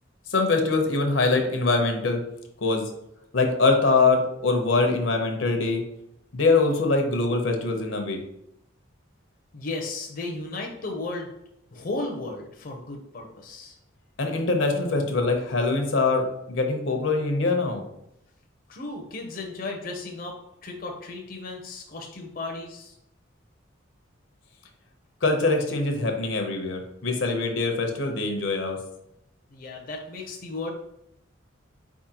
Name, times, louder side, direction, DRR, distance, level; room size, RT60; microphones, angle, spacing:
voice 1, 0.3-2.2 2.6-2.9 3.3-5.8 6.3-8.2 14.2-17.8 25.2-28.8, left 3 dB, 80° left, 4 dB, 0.8 m, -23 dB
voice 2, 9.5-11.3 11.7-13.8 18.7-20.4 20.6-23.0 29.5-30.7, left 2 dB, 45° left, 1 dB, 0.6 m, -35 dB
4.5 x 3.6 x 2.8 m, 0.79 s
head